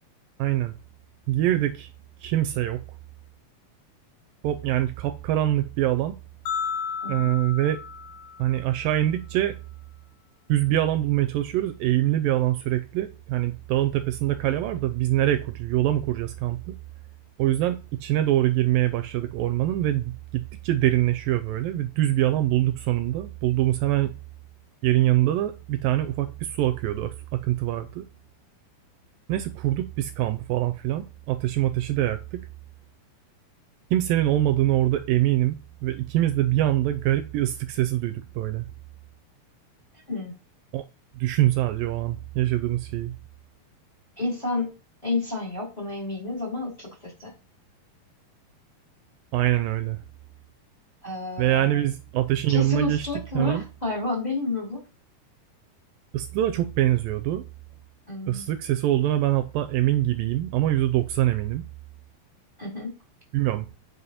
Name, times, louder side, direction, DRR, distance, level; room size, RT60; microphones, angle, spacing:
voice 1, 0.4-0.7 1.3-1.9 2.2-2.8 4.4-6.2 7.1-7.8 8.4-9.6 10.5-16.8 17.4-24.1 24.8-28.1 29.3-32.5 33.9-38.7 40.7-40.8 41.2-43.1 49.3-50.0 51.4-53.1 53.3-53.6 56.1-57.4 58.3-61.6 63.3-63.7, right 14 dB, 80° right, 2.2 m, -24 dB
sound 1, 6.5-8.8, left 6 dB, 90° left, 2.8 m, -33 dB
voice 2, 44.2-44.7 45.0-47.3 51.0-51.9 52.5-54.8 58.1-58.4 62.6-62.9, left 2 dB, 10° left, 2.8 m, -30 dB
9.5 x 5.6 x 4.2 m
omnidirectional pair, 4.3 m